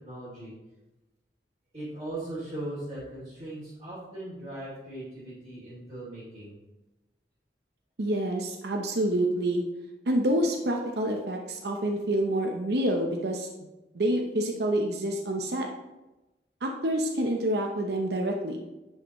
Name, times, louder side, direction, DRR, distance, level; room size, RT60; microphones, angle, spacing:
voice 1, 0.0-0.5 1.7-6.5, right 1 dB, 30° right, -11 dB, 2.6 m, -39 dB
voice 2, 8.0-9.6 10.1-13.5 13.9-15.7 16.6-18.6, right 1 dB, 65° right, 2 dB, 0.7 m, -27 dB
9.7 x 5.6 x 3.0 m, 1.0 s
head